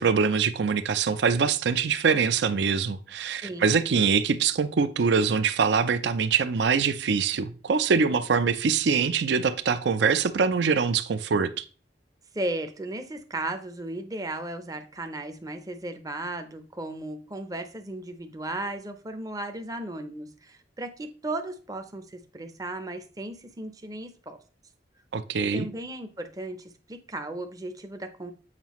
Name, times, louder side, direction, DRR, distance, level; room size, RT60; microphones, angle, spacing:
voice 1, 0.0-11.7 25.1-25.7, right 5 dB, 65° right, 0.5 m, -24 dB
voice 2, 3.4-3.7 12.3-24.4 25.5-28.3, right 2 dB, 20° right, 0.6 m, -35 dB
7.4 x 4.7 x 3.0 m
head